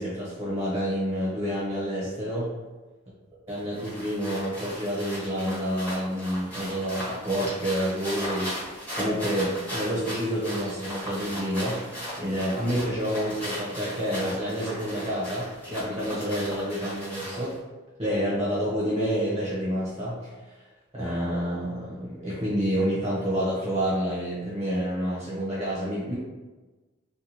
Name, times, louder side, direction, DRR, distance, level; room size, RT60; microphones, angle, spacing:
voice 1, 0.0-2.5 3.5-11.8 12.2-17.6 18.0-20.6 20.9-26.1, equal, 20° right, -7 dB, 0.8 m, -28 dB
sound 1, 3.5-17.6, equal, 10° left, 1.1 m, -37 dB
4.3 x 2.3 x 2.7 m, 1.2 s
head